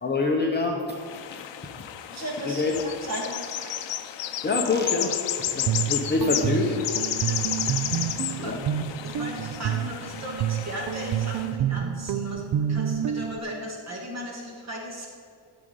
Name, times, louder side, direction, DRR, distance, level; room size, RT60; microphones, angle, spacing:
voice 1, 0.0-1.0 1.3-1.4 2.4-2.8 4.4-6.9 8.4-8.6, left 3 dB, 20° left, 0 dB, 0.7 m, -26 dB
sound 1, 1.0-11.5, left 11 dB, 60° left, 0.7 m, -32 dB
voice 2, 2.1-2.7 3.0-4.0 7.3-8.5 9.0-12.4 12.7-15.1, right 1 dB, 35° right, -1 dB, 2.1 m, -36 dB
Guitar, 5.4-13.4, right 10 dB, 50° right, 0.5 m, -29 dB
12.5 x 5.1 x 8.8 m, 2.2 s
cardioid pair, 175°, 48 cm